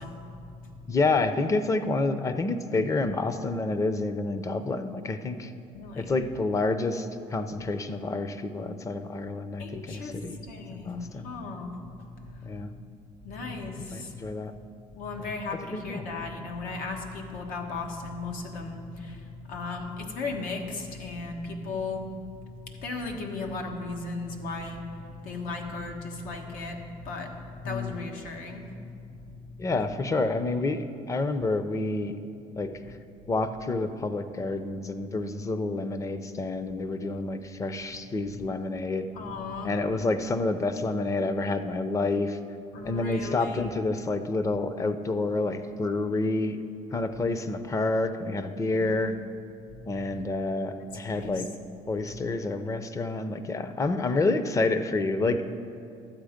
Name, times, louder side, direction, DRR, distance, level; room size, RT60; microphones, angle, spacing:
voice 1, 0.0-1.0 5.7-6.2 9.6-12.8 13.2-14.2 14.5-14.6 14.9-29.7 39.1-39.7 42.7-43.7 48.6-49.1 49.6-50.2 51.0-51.5 51.9-52.3, left 3 dB, 85° left, 2 dB, 1.3 m, -37 dB
voice 2, 0.9-5.5 6.0-10.4 10.7-11.3 12.4-12.7 13.9-14.5 15.7-16.0 27.6-27.9 29.6-32.1 32.6-32.7 33.3-39.1 39.6-42.4 42.8-46.6 46.9-49.1 49.9-51.5 51.9-55.4, left 3 dB, 20° left, 10 dB, 0.5 m, -28 dB
12.0 x 8.0 x 5.1 m, 2.5 s
cardioid pair, 130°, 14 cm